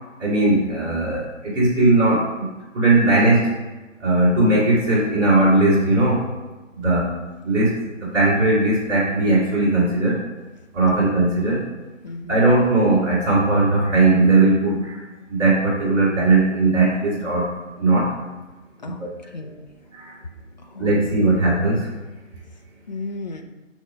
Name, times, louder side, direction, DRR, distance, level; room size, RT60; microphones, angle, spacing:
voice 1, 0.2-2.5 2.7-3.5 4.0-6.3 6.7-7.1 7.4-7.7 8.0-10.2 10.7-11.6 12.3-15.0 15.3-17.5 17.8-18.1 18.8-19.1 19.9-20.1 20.8-21.9, right 2 dB, 10° right, -12 dB, 2.0 m, -18 dB
voice 2, 12.0-12.4 18.8-19.0 19.3-19.7 20.7-21.0 22.9-23.4, left 2 dB, 35° left, 4 dB, 0.6 m, -34 dB
6.3 x 3.2 x 5.3 m, 1.2 s
figure-of-eight pair, 150°, 39 cm